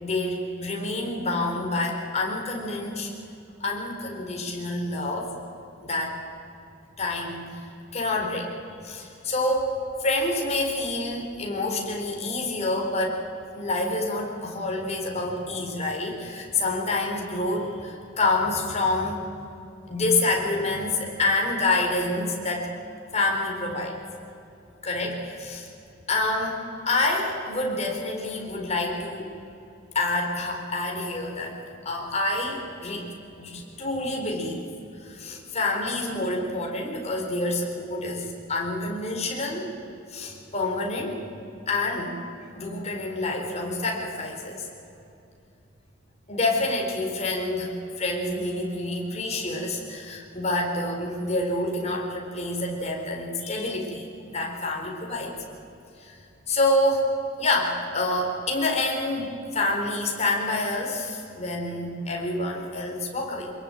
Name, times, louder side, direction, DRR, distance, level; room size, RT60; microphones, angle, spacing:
voice 1, 0.0-3.1 3.6-5.3 5.8-6.2 7.0-7.6 7.9-8.5 8.8-9.7 10.0-13.2 13.5-19.2 19.9-22.7 23.1-24.0 24.8-25.7 26.1-26.6 26.9-29.3 29.9-31.6 31.8-33.1 33.4-34.7 35.0-39.7 40.1-41.2 41.7-42.2 42.5-44.7 46.3-55.4 56.0-56.2 56.5-57.1 57.4-63.5, left 2 dB, 35° left, 0 dB, 4.1 m, -27 dB
23.5 x 22.0 x 9.1 m, 2.7 s
head